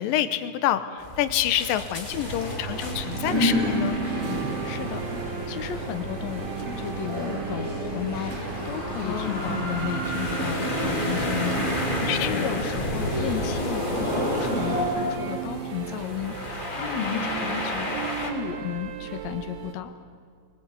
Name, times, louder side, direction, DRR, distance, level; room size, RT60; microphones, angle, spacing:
voice 1, 0.0-4.0 7.2-7.4 9.1-9.6 12.1-12.5 17.0-17.3, left 11 dB, 90° left, 11 dB, 2.6 m, -27 dB
sound 1, 1.0-18.3, left 2 dB, 15° left, 2.5 m, -33 dB
sound 2, 2.1-14.8, equal, 15° right, 7.5 m, -31 dB
sound 3, 2.7-19.7, right 8 dB, 90° right, 3.0 m, -35 dB
voice 2, 4.6-19.9, left 10 dB, 60° left, 8 dB, 2.1 m, -34 dB
22.0 x 21.5 x 8.3 m, 2.2 s
omnidirectional pair, 3.9 m